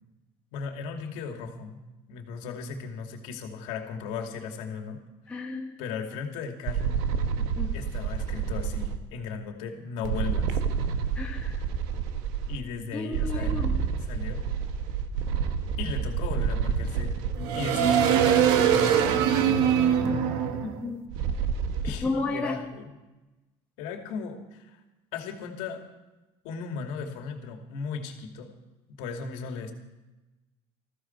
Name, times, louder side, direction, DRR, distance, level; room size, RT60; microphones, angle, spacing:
voice 1, 0.5-1.8 2.1-5.0 5.8-7.0 7.7-10.6 12.5-13.7 14.0-14.5 15.8-17.1 17.5-20.3 21.8-22.9 23.8-24.8 25.1-25.9 26.4-28.5 29.0-29.7, left 5 dB, 70° left, 4 dB, 2.6 m, -36 dB
voice 2, 5.3-5.7 7.6-7.8 11.1-11.5 12.9-13.8 20.6-21.0 22.0-22.6, left 2 dB, 10° left, -1 dB, 1.6 m, -32 dB
sound 1, 6.7-9.0 10.0-12.6 13.1-21.9, right 8 dB, 85° right, 1.6 m, -26 dB
20.5 x 15.0 x 4.6 m, 1.1 s
cardioid pair, 180°, 13 cm